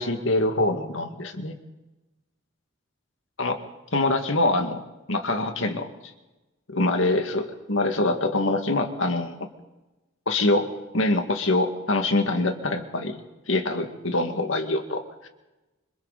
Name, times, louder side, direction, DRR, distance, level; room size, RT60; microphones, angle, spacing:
voice 1, 0.0-1.5 3.4-3.6 3.9-4.8 5.1-5.9 6.7-9.5 10.3-13.2 13.5-15.3, left 2 dB, 70° left, 5 dB, 2.3 m, -24 dB
26.0 x 26.0 x 4.3 m, 1.1 s
head